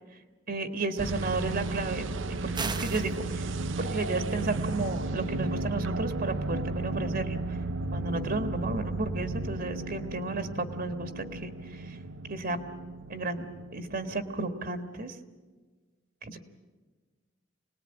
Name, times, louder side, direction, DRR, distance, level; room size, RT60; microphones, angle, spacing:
voice 1, 0.5-3.5 3.8-7.6 7.9-12.0 12.3-12.6 13.1-15.2 16.2-16.4, right 3 dB, 50° right, 8 dB, 1.6 m, -33 dB
sound 1, 1.0-14.4, right 2 dB, 80° right, 0.9 m, -34 dB
sound 2, 2.5-3.1, right 4 dB, 25° right, 1.0 m, -34 dB
26.5 x 19.5 x 8.9 m, 1.4 s
head